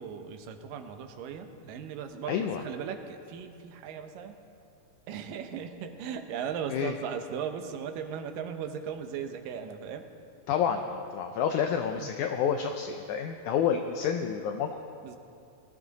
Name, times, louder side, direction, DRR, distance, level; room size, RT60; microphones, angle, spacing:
voice 1, 0.0-4.4 5.1-10.1 12.0-12.1 15.0-15.2, right 7 dB, 80° right, 6 dB, 2.5 m, -37 dB
voice 2, 2.3-2.6 6.7-6.9 10.5-14.8, left 7 dB, 80° left, 6 dB, 1.8 m, -29 dB
20.0 x 13.5 x 4.0 m, 2.6 s
omnidirectional pair, 4.0 m